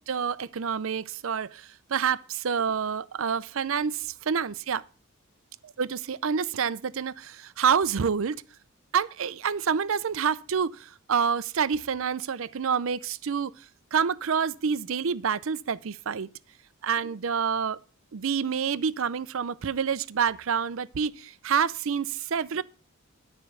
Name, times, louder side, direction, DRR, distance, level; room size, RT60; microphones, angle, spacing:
voice 1, 0.1-4.8 5.8-8.4 8.9-13.5 13.9-16.3 16.8-17.8 18.1-22.6, right 6 dB, 65° right, 0.5 m, -28 dB
11.5 x 4.5 x 7.0 m
head